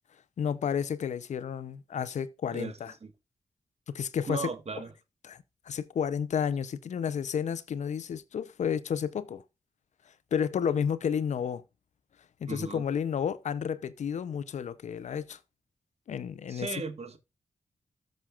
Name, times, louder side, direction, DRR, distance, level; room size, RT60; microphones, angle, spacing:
voice 1, 0.4-2.9 3.9-4.5 5.2-5.4 5.7-9.4 10.3-11.6 12.4-15.4 16.1-16.8, left 7 dB, 80° left, 0.7 m, -31 dB
voice 2, 4.3-4.9 12.5-12.8 16.5-17.2, right 4 dB, 60° right, 1.7 m, -36 dB
13.5 x 6.4 x 2.4 m
cardioid pair, 45°, 12 cm